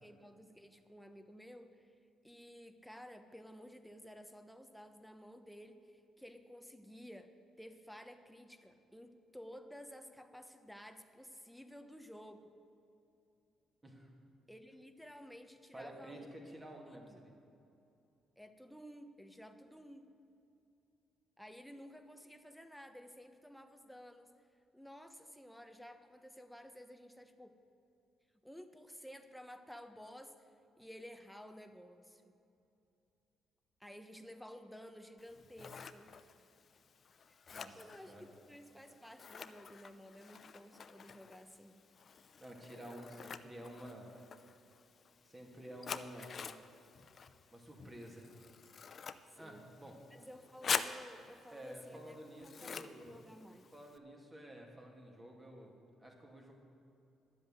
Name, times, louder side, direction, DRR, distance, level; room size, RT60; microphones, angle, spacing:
voice 1, 0.0-1.9 2.2-12.5 14.5-16.3 16.9-17.2 18.4-20.1 21.4-24.3 24.7-27.6 28.4-30.5 30.8-32.3 33.8-36.3 37.3-37.4 37.8-41.8 49.3-49.7 50.1-53.7, equal, ahead, 7 dB, 1.0 m, -54 dB
voice 2, 15.7-17.3 37.5-38.3 42.4-44.2 45.2-46.4 47.5-48.3 49.4-50.0 51.5-53.3 53.7-55.7 56.0-56.5, right 1 dB, 20° right, 0 dB, 2.8 m, -51 dB
Scissors, 35.2-54.0, left 6 dB, 50° left, 0.6 m, -47 dB
11.0 x 7.8 x 9.3 m, 2.8 s
cardioid pair, 75°, 0 cm